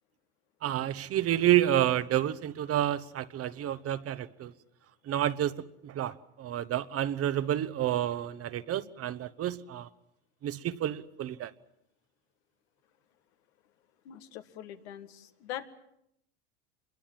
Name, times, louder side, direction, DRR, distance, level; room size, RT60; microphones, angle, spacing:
voice 1, 0.6-4.5 5.0-9.9 10.4-11.5, right 12 dB, 45° right, 1.2 m, -29 dB
voice 2, 14.1-15.6, left 12 dB, 75° left, 1.9 m, -42 dB
26.0 x 22.5 x 7.6 m
hypercardioid pair, 85°, 33 cm